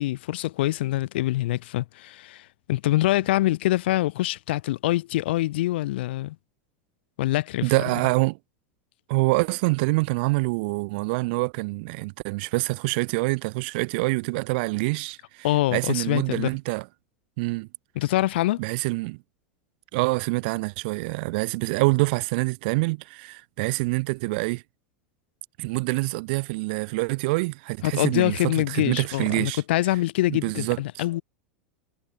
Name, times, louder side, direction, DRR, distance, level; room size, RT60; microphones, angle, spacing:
voice 1, 0.0-6.4 7.2-7.7 15.4-16.5 17.9-18.6 27.8-31.2, left 16 dB, 60° left, 1.4 m, -25 dB
voice 2, 7.6-8.4 9.1-16.9 17.4-17.7 18.6-19.2 19.9-24.6 25.6-29.6 30.3-31.0, right 26 dB, 55° right, 3.5 m, -26 dB
figure-of-eight pair, 85°, 6 cm